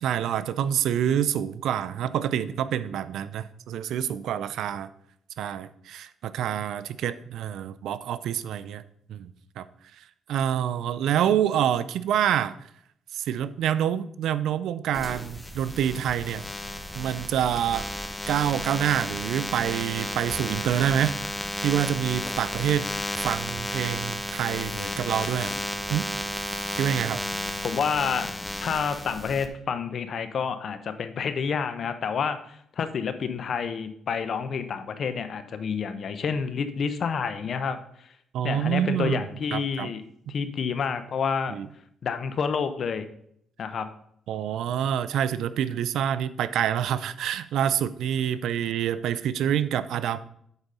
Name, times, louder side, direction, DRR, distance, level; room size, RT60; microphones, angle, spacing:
voice 1, 0.0-4.9 5.4-8.8 9.1-9.3 9.6-9.7 10.0-12.5 13.1-16.5 17.0-17.9 18.3-21.1 21.6-22.9 23.2-25.6 25.9-26.1 26.8-27.2 38.3-39.2 39.5-39.9 41.5-41.7 44.3-50.2, right 10 dB, 80° right, 15 dB, 0.4 m, -27 dB
sound 1, 14.9-29.5, left 1 dB, 5° left, 0.9 m, -33 dB
voice 2, 27.6-28.3 28.6-38.1 38.4-40.0 40.3-41.6 42.0-43.0 43.6-43.9, left 6 dB, 55° left, 10 dB, 0.8 m, -29 dB
8.1 x 4.1 x 5.3 m, 0.69 s
cardioid pair, 90°, 0 cm